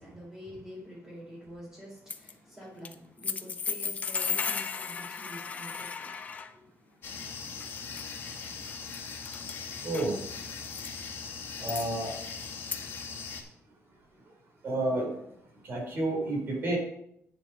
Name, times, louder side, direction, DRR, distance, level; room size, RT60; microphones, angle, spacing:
voice 1, 0.0-6.2 6.5-6.6, equal, 15° right, -9 dB, 4.2 m, -47 dB
sound 1, 2.1-2.3 2.9-3.0 3.2-6.5 7.6-8.1 8.7-9.0 9.3-9.6 9.9-10.9 11.7-11.9 12.7-12.8, left 5 dB, 30° left, 0.6 m, -35 dB
sound 2, 7.0-13.4, left 5 dB, 50° left, 2.5 m, -40 dB
voice 2, 9.8-10.2 11.6-12.1 14.6-15.1 15.6-16.8, right 2 dB, 45° right, -1 dB, 4.6 m, -30 dB
9.6 x 6.8 x 5.4 m, 0.75 s
cardioid pair, 170°, 5 cm